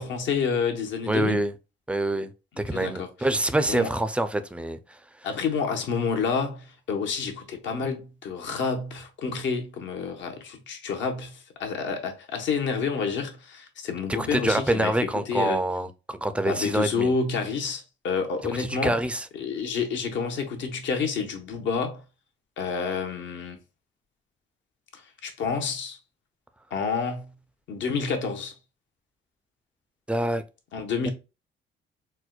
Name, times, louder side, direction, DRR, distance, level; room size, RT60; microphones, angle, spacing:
voice 1, 0.0-1.4 2.7-3.1 3.7-3.9 5.2-15.6 16.4-19.0 19.3-22.0 22.6-23.6 24.9-26.0 26.7-27.3 27.7-28.5 30.7-31.1, left 5 dB, 70° left, 0.8 m, -29 dB
voice 2, 1.1-1.5 1.9-4.8 14.1-17.1 18.6-19.3 30.1-30.4, right 1 dB, 5° right, 0.3 m, -26 dB
4.3 x 2.1 x 2.3 m
cardioid pair, 90°, 20 cm